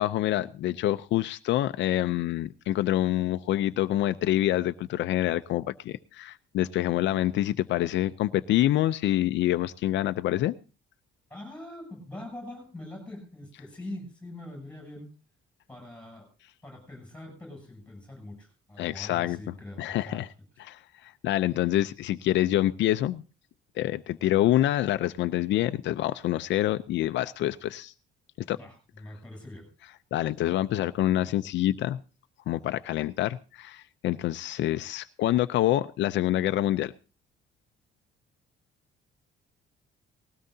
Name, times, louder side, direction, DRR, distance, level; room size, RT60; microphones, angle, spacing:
voice 1, 0.0-10.5 18.8-19.4 19.8-20.3 20.6-23.2 23.8-27.9 28.5-28.6 30.1-32.0 32.5-36.9, left 14 dB, 70° left, 10 dB, 0.6 m, -26 dB
voice 2, 11.3-15.1 15.7-16.3 16.6-20.3 20.5-20.6 28.5-29.7, left 1 dB, 5° left, 4 dB, 7.9 m, -43 dB
19.5 x 16.5 x 2.8 m, 0.33 s
cardioid pair, 170°, 20 cm